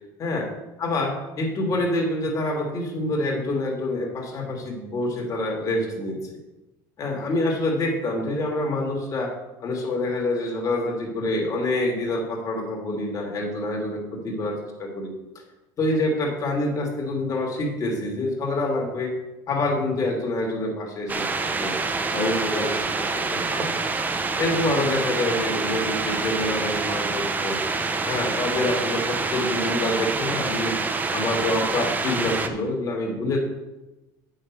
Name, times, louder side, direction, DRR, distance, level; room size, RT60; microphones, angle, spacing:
voice 1, 0.8-6.3 7.0-9.3 9.6-15.1 15.8-19.1 19.5-21.8 22.1-23.8 24.4-27.6 28.0-30.8 31.1-33.4, left 2 dB, 35° left, 0 dB, 2.9 m, -26 dB
sound 1, 21.1-32.5, right 3 dB, 20° right, 0.9 m, -26 dB
9.2 x 6.6 x 6.3 m, 1.0 s
supercardioid pair, 120°, 10 cm